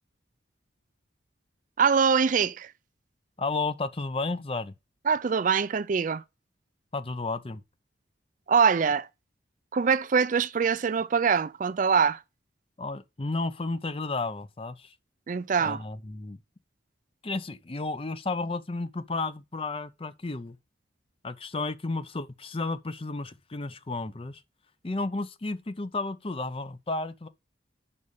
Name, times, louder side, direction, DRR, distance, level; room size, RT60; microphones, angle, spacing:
voice 1, 1.8-2.7 5.1-6.2 8.5-9.1 9.7-12.2 15.3-15.8, right 6 dB, 45° right, 0.4 m, -23 dB
voice 2, 3.4-4.7 6.9-7.6 12.8-15.0 15.6-16.4 17.2-20.6 21.2-24.4 24.8-27.3, left 3 dB, 30° left, 0.6 m, -32 dB
5.4 x 5.4 x 6.4 m
head